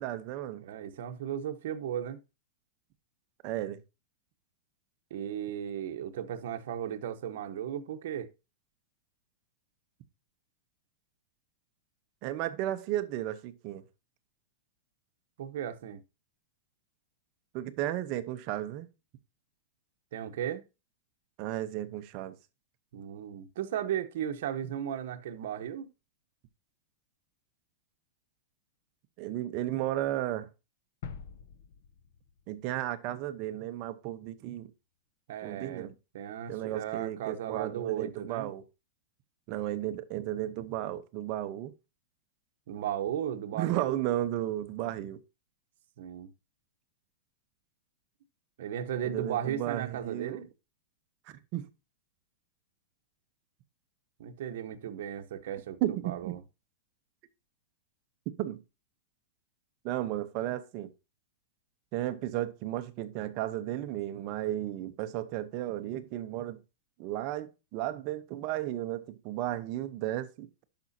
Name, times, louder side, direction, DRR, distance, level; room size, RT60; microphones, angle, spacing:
voice 1, 0.0-0.6 3.4-3.8 12.2-13.8 17.5-18.9 21.4-22.3 29.2-30.5 32.5-34.7 35.4-35.9 36.5-38.6 39.5-41.7 43.5-45.2 49.0-50.4 51.3-51.7 55.8-56.4 58.4-58.6 59.8-60.9 61.9-66.6 67.0-70.6, right 13 dB, 35° right, 0.8 m, -34 dB
voice 2, 0.6-2.2 5.1-8.3 15.4-16.0 20.1-20.6 22.9-25.9 35.3-35.9 36.1-38.5 42.7-44.0 46.0-46.3 48.6-50.5 54.2-55.8 56.0-56.4, right 10 dB, 60° right, 1.0 m, -35 dB
sound 1, 31.0-33.0 33.3-33.5, left 6 dB, 55° left, 0.9 m, -46 dB
10.5 x 6.1 x 2.7 m
supercardioid pair, 165°, 0 cm